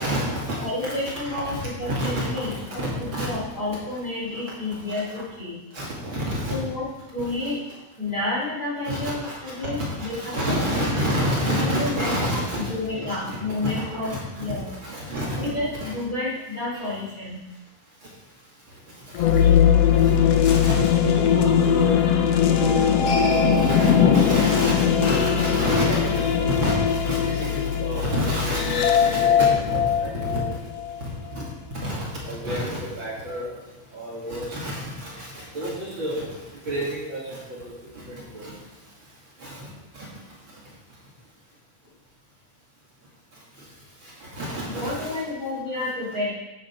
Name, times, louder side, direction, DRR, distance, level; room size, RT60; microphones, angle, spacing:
voice 1, 0.0-0.9 1.3-3.3 4.9-5.2 5.7-6.6 7.2-7.3 8.8-12.7 13.1-15.5 15.8-15.9 19.1-19.2 20.0-20.1 20.4-21.9 22.5-30.4 31.3-31.4 31.8-33.5 33.9-36.2 36.6-37.7 38.1-38.5 39.4-40.1 44.2-45.2, equal, 40° right, -6 dB, 2.9 m, -29 dB
voice 2, 0.6-5.6 6.5-7.6 8.0-10.9 11.4-12.4 12.7-14.7 15.4-17.4 44.7-46.3, left 2 dB, 30° left, -8 dB, 3.8 m, -30 dB
sound 1, 19.1-31.0, left 8 dB, 75° left, 1.4 m, -20 dB
10.5 x 9.0 x 4.6 m, 1.1 s
omnidirectional pair, 3.7 m